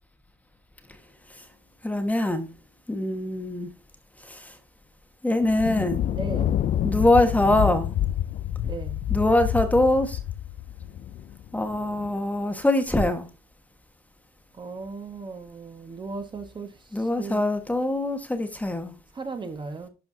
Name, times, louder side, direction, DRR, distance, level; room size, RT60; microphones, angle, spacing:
voice 1, 1.8-2.5 2.9-3.7 4.2-4.5 5.2-6.1 6.8-7.9 9.1-10.2 11.5-13.3 16.9-18.9, left 1 dB, 10° left, 1.2 m, -23 dB
Thunder, 5.4-12.1, left 11 dB, 50° left, 0.4 m, -28 dB
voice 2, 6.1-6.7 8.6-9.0 14.5-17.4 19.1-19.9, right 4 dB, 25° right, 1.2 m, -37 dB
11.5 x 4.5 x 2.7 m
cardioid pair, 110°, 17 cm